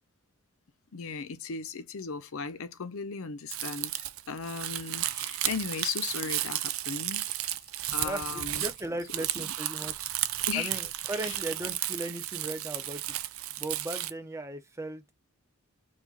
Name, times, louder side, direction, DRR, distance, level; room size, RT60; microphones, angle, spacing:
voice 1, 0.9-7.4 7.9-8.6 9.4-9.5 10.5-10.7 11.2-11.4, left 5 dB, 65° left, 0.6 m, -36 dB
Crumpling crinkling, 3.5-14.1, right 14 dB, 65° right, 0.5 m, -33 dB
voice 2, 8.0-10.1 10.5-13.1 13.6-15.1, right 2 dB, 15° right, 0.6 m, -37 dB
4.8 x 2.4 x 4.1 m
head